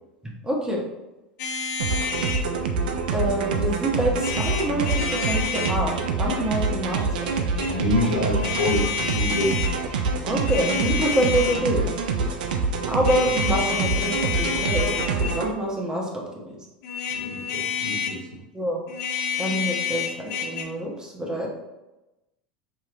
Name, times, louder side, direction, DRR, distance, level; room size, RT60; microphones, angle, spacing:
voice 1, 0.4-0.8 3.1-7.3 10.2-11.9 12.8-14.9 15.2-16.3 18.5-18.8 19.4-21.5, right 1 dB, 15° right, -2 dB, 1.1 m, -26 dB
sound 1, 1.4-2.5 4.2-5.8 7.3-7.7 8.4-9.7 10.3-11.7 13.0-15.5 16.8-18.2 18.9-20.6, left 7 dB, 55° left, 0.6 m, -29 dB
sound 2, 1.8-15.5, right 4 dB, 70° right, 0.5 m, -26 dB
voice 2, 7.6-9.6 17.2-18.4, left 1 dB, 90° left, -2 dB, 0.8 m, -26 dB
4.9 x 2.9 x 2.5 m, 0.99 s
hypercardioid pair, 80°, 5 cm